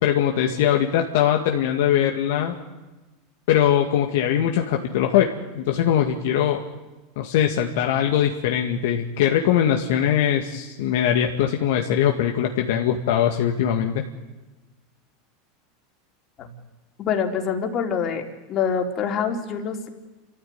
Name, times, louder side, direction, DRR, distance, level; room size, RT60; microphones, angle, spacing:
voice 1, 0.0-2.6 3.5-5.3 5.5-6.6 7.2-14.0, left 10 dB, 70° left, 3 dB, 2.1 m, -21 dB
voice 2, 17.0-18.2 18.5-19.9, left 7 dB, 40° left, 4 dB, 4.0 m, -25 dB
30.0 x 14.5 x 9.6 m, 1.2 s
hypercardioid pair, 95°, 0 cm